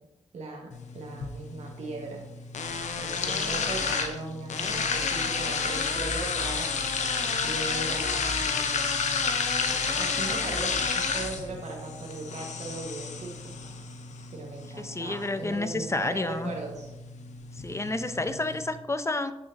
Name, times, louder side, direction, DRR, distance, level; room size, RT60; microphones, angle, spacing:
voice 1, 0.3-2.2 3.0-8.8 9.7-13.5 14.3-16.9, right 3 dB, 70° right, -1 dB, 1.2 m, -38 dB
sound 1, 0.7-18.7, left 5 dB, 80° left, 0.7 m, -31 dB
voice 2, 14.8-16.5 17.6-19.3, left 2 dB, 25° left, 10 dB, 0.6 m, -30 dB
11.5 x 3.9 x 2.6 m, 0.93 s
cardioid pair, 50°, 12 cm